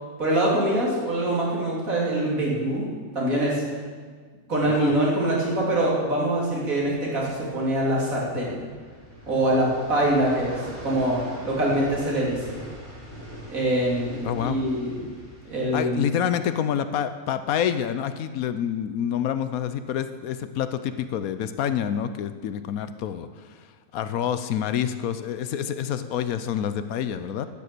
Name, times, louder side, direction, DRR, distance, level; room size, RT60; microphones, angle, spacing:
voice 1, 0.2-2.9 3.1-3.6 4.5-8.6 9.3-12.6 13.5-15.1 15.5-16.1 25.6-25.7, right 1 dB, 65° right, -4 dB, 3.5 m, -24 dB
voice 2, 4.7-5.0 14.2-14.6 15.7-23.6 23.9-27.5, left 9 dB, 75° left, 11 dB, 1.1 m, -27 dB
sound 1, 6.7-15.7, equal, 35° right, 3.2 m, -42 dB
12.0 x 9.4 x 6.7 m, 1.5 s
omnidirectional pair, 1.6 m